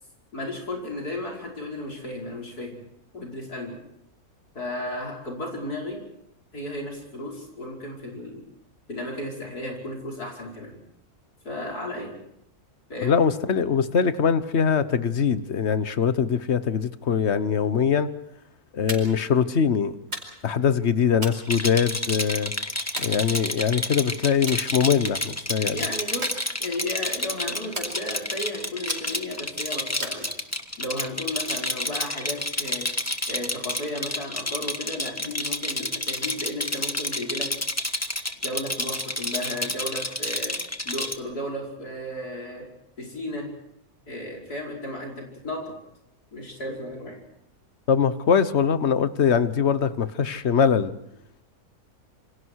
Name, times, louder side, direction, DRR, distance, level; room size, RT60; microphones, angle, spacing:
voice 1, 0.3-2.8 3.1-3.8 4.5-6.0 6.5-8.5 8.9-10.8 11.4-12.1 12.9-13.2 25.7-30.3 30.8-32.9 33.3-37.5 38.4-40.6 40.9-42.7 43.0-43.5 44.1-45.7 46.3-47.2, left 1 dB, 75° left, -1 dB, 5.9 m, -34 dB
voice 2, 13.0-18.1 18.7-19.9 20.4-22.5 23.0-25.8 47.9-50.9, left 7 dB, 50° left, 13 dB, 1.3 m, -22 dB
sound 1, 18.9-19.3 20.1-20.6 21.2-22.1 23.0-23.8 24.5-24.7 25.1-25.4 26.2-27.0 27.7-28.4 28.9-29.4 30.0-30.8, right 1 dB, 40° right, 5.2 m, -37 dB
Rattle, 21.5-41.2, left 1 dB, 10° left, 1.2 m, -29 dB
28.0 x 26.0 x 4.8 m, 0.79 s
omnidirectional pair, 1.6 m